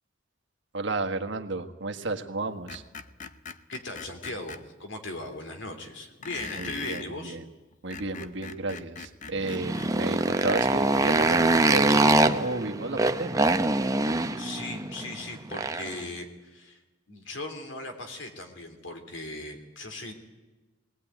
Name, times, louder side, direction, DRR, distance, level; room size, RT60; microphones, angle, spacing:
voice 1, 0.7-2.8 6.6-7.4 7.8-13.5, right 3 dB, 65° right, 4 dB, 1.6 m, -33 dB
Screech, 2.7-4.6 6.2-7.1 7.7-9.9, left 5 dB, 40° left, 0.8 m, -41 dB
voice 2, 3.7-7.4 14.4-16.8 17.1-20.1, left 2 dB, 65° left, 5 dB, 3.2 m, -38 dB
Motorcycle, 9.4-16.0, right 2 dB, 20° right, 0.8 m, -24 dB
21.0 x 18.5 x 9.4 m, 1.2 s
head